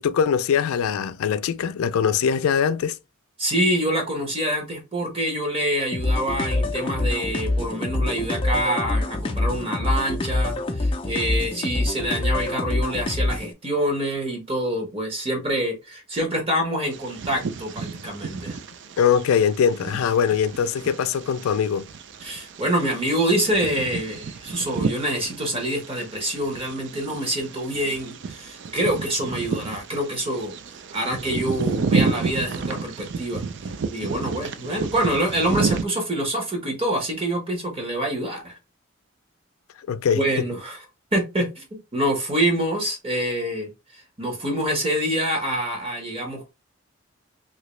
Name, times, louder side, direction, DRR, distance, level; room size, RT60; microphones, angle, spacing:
voice 1, 0.0-3.0 19.0-21.9 39.9-40.2, left 7 dB, 90° left, 0.3 m, -22 dB
voice 2, 3.4-18.6 22.2-30.6 30.9-38.6 40.1-40.8 41.1-46.5, right 1 dB, 25° right, 1.1 m, -26 dB
sound 1, 5.9-13.5, left 2 dB, 25° left, 0.4 m, -25 dB
Bird vocalization bird call bird song, 16.9-35.8, right 4 dB, 55° right, 0.4 m, -31 dB
2.9 x 2.8 x 3.0 m
head